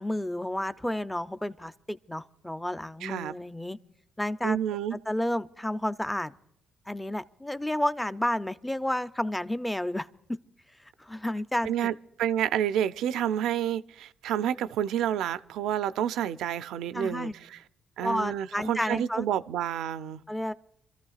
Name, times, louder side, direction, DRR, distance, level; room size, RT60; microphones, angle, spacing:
voice 1, 0.0-3.8 4.2-4.6 4.9-6.3 6.9-10.4 11.0-11.9 16.9-17.3 18.0-19.3 20.3-20.5, left 1 dB, 5° left, 0.5 m, -31 dB
voice 2, 3.0-3.3 4.4-5.0 11.6-17.6 18.0-20.2, right 10 dB, 85° right, 0.4 m, -29 dB
29.0 x 14.0 x 2.4 m
cardioid pair, 90°, 0 cm